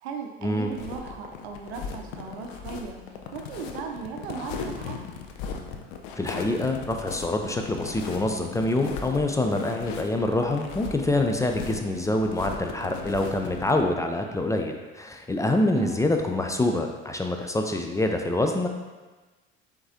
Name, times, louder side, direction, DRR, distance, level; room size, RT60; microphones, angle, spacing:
voice 1, 0.0-5.0 15.7-15.9, right 5 dB, 80° right, 3 dB, 0.6 m, -37 dB
sound 1, 0.7-13.8, left 6 dB, 75° left, 0.6 m, -37 dB
voice 2, 6.2-18.7, left 2 dB, 10° left, 3 dB, 0.3 m, -26 dB
4.7 x 3.6 x 2.8 m, 1.3 s
hypercardioid pair, 70°, 32 cm